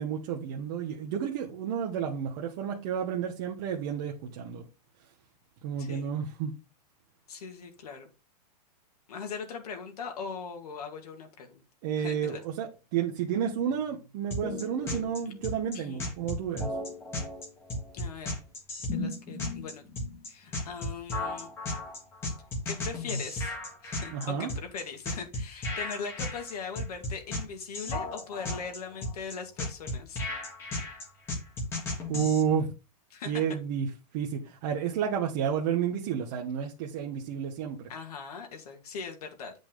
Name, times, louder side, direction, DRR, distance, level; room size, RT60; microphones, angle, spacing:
voice 1, 0.0-4.6 5.6-6.5 11.8-16.7 24.1-24.5 32.1-32.7 33.3-33.9 34.1-37.9, right 8 dB, 30° right, 1.1 m, -31 dB
voice 2, 5.8-6.1 7.3-8.1 9.1-11.6 12.0-12.4 15.7-16.0 17.9-18.4 18.9-19.8 20.3-21.5 22.6-23.6 23.8-30.2 33.1-33.4 37.9-39.5, left 5 dB, 65° left, 2.2 m, -40 dB
sound 1, 14.3-32.4, left 2 dB, 10° left, 1.5 m, -34 dB
9.1 x 5.2 x 3.8 m
supercardioid pair, 180°, 21 cm